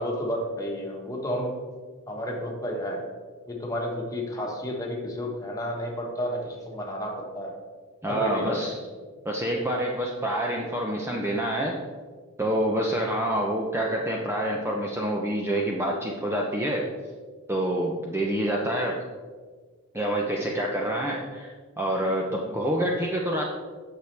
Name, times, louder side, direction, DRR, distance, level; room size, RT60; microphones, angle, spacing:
voice 1, 0.0-1.6 2.1-3.0 3.5-7.5 8.1-8.6 22.4-22.7, equal, 15° left, -1 dB, 1.4 m, -31 dB
voice 2, 8.0-8.7 9.2-11.7 12.4-16.9 17.5-19.0 19.9-23.4, right 1 dB, 10° right, -1 dB, 0.6 m, -27 dB
9.6 x 6.5 x 3.4 m, 1.5 s
head